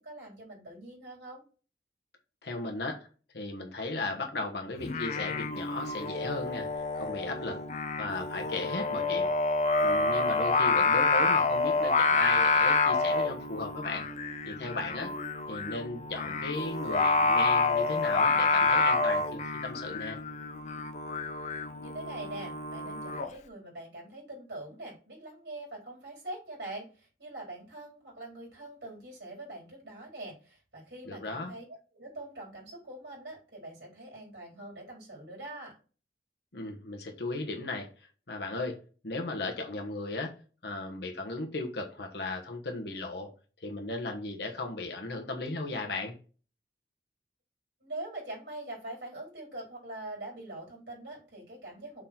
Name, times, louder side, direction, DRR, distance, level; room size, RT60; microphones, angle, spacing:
voice 1, 0.0-1.4 21.8-31.6 31.9-35.8 47.8-52.1, right 2 dB, 80° right, -2 dB, 3.9 m, -43 dB
voice 2, 2.4-3.1 3.3-6.7 7.0-7.6 8.0-9.3 9.8-14.1 14.4-15.1 15.5-20.2 31.1-31.5 36.5-37.9 38.3-38.8 39.0-40.3 40.6-43.3 43.6-46.1, left 2 dB, 70° left, 2 dB, 1.2 m, -36 dB
Singing, 4.8-23.3, left 3 dB, 40° left, 0.6 m, -28 dB
6.6 x 3.9 x 4.3 m, 0.36 s
head